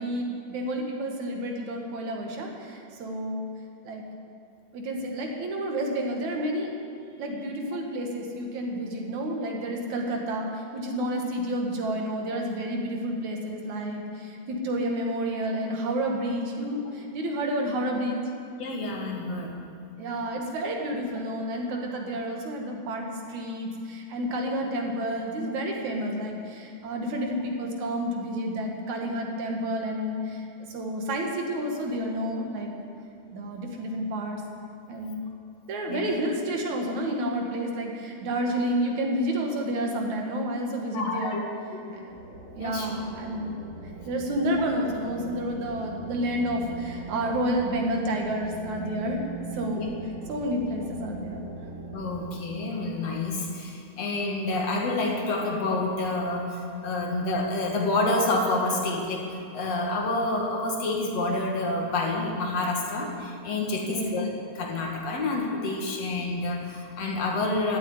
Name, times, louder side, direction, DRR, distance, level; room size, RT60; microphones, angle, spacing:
voice 1, 0.0-3.5 3.8-4.0 4.7-6.7 7.2-18.2 20.0-32.7 33.3-34.4 34.9-35.2 35.7-41.5 41.9-42.2 42.5-43.5 44.1-49.2 49.5-49.9 50.3-51.4 63.9-64.1, right 1 dB, 75° right, 1 dB, 3.1 m, -30 dB
voice 2, 18.6-19.6 35.9-36.0 40.9-41.4 41.9-42.0 42.6-42.9 49.7-49.9 51.9-64.3 64.6-67.8, left 2 dB, 60° left, 0 dB, 2.8 m, -28 dB
sound 1, 42.1-52.3, right 3 dB, 45° right, 3.9 m, -41 dB
15.5 x 7.9 x 9.6 m, 2.5 s
omnidirectional pair, 3.4 m